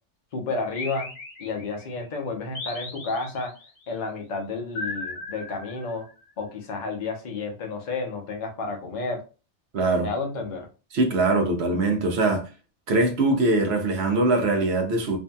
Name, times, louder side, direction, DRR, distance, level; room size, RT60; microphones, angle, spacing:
voice 1, 0.3-1.1 1.4-3.5 3.9-6.1 6.4-9.2 10.0-10.7, left 3 dB, 50° left, 0.7 m, -31 dB
sound 1, 0.8-1.9 2.6-3.7 4.8-6.2, left 2 dB, 90° left, 1.1 m, -37 dB
voice 2, 9.7-10.1 10.9-12.4 12.9-15.2, right 2 dB, 70° right, 0.9 m, -22 dB
2.6 x 2.6 x 2.2 m
omnidirectional pair, 1.2 m